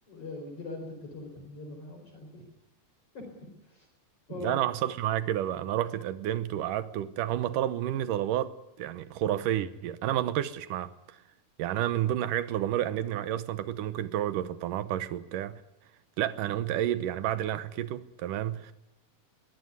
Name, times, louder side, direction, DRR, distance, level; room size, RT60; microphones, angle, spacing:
voice 1, 0.1-2.5 3.1-3.3 3.6-3.9 4.3-4.6, left 3 dB, 45° left, 5.2 m, -41 dB
voice 2, 4.4-11.2 11.6-15.6 16.2-18.7, right 12 dB, 80° right, 2.5 m, -30 dB
22.5 x 17.0 x 9.7 m
omnidirectional pair, 3.7 m